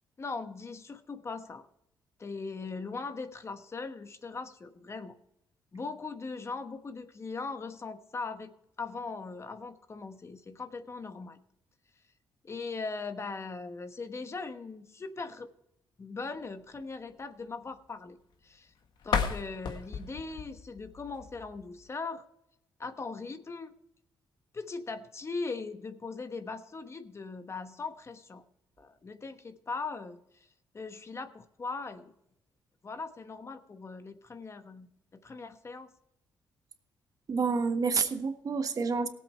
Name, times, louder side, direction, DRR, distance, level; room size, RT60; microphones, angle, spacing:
voice 1, 0.2-1.7 2.2-5.2 5.7-8.5 8.8-11.4 12.4-15.5 16.0-18.2 18.4-18.7 19.0-22.2 22.8-23.7 24.5-28.4 28.8-30.5 30.7-32.1 32.8-35.9, left 4 dB, 35° left, 9 dB, 1.2 m, -40 dB
sound 1, 19.0-21.9, left 6 dB, 70° left, 1.4 m, -34 dB
voice 2, 37.3-39.1, right 5 dB, 50° right, 8 dB, 1.4 m, -28 dB
17.5 x 7.9 x 4.5 m, 0.79 s
cardioid pair, 80°, 8 cm